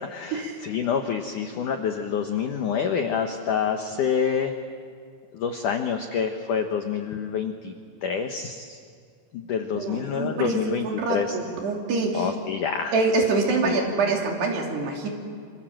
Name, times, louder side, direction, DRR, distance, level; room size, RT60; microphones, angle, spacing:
voice 1, 0.1-4.5 5.3-7.7 8.0-8.8 9.3-11.4 12.1-12.9 13.6-13.8, left 7 dB, 80° left, 5 dB, 1.8 m, -27 dB
voice 2, 9.7-12.3 12.9-15.1, right 3 dB, 60° right, 1 dB, 4.9 m, -25 dB
27.5 x 26.5 x 7.7 m, 2.2 s
omnidirectional pair, 5.4 m